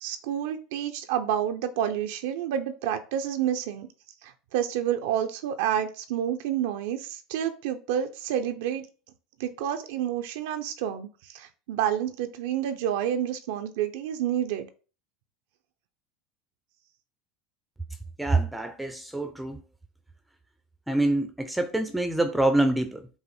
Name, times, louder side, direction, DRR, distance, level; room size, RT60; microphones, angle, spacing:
voice 1, 0.0-3.9 4.2-8.9 9.4-14.7, right 10 dB, 70° right, 0.5 m, -29 dB
voice 2, 18.2-19.6 20.9-23.1, right 2 dB, 5° right, 0.6 m, -25 dB
5.5 x 2.0 x 4.3 m
hypercardioid pair, 90°, 0 cm